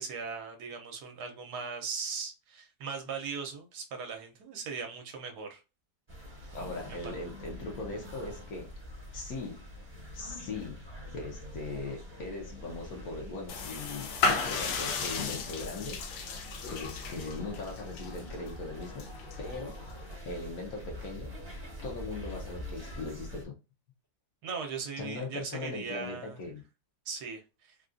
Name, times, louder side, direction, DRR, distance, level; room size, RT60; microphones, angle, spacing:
voice 1, 0.0-5.6 6.4-6.5 7.0-7.1 24.4-26.4 27.1-27.7, right 5 dB, 75° right, 1.3 m, -39 dB
sound 1, 6.1-23.4, equal, 20° right, 0.7 m, -45 dB
voice 2, 6.5-8.7 9.1-9.7 10.1-10.9 11.1-19.0 19.4-19.9 20.2-21.3 21.8-23.5 25.0-26.6, left 3 dB, 60° left, 1.2 m, -40 dB
sound 2, 13.5-20.1, left 4 dB, 80° left, 1.3 m, -35 dB
3.7 x 2.3 x 2.5 m
omnidirectional pair, 1.8 m